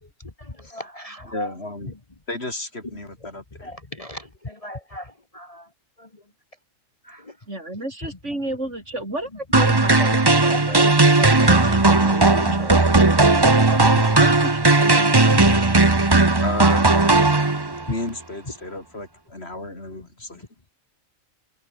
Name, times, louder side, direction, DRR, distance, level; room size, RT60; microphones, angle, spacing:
voice 1, 0.2-1.5 3.6-5.7 6.0-6.1 7.0-7.4 8.3-8.4 10.1-10.7 12.4-12.7, left 1 dB, 25° left, 1.9 m, -37 dB
voice 2, 1.3-1.9 2.3-3.7 16.3-16.9 17.9-20.4, left 2 dB, 50° left, 5.1 m, -33 dB
voice 3, 7.5-12.8 13.4-15.6, right 1 dB, 60° right, 7.9 m, -33 dB
sound 1, 9.5-17.9, right 3 dB, 20° right, 1.1 m, -16 dB
omnidirectional pair, 1.4 m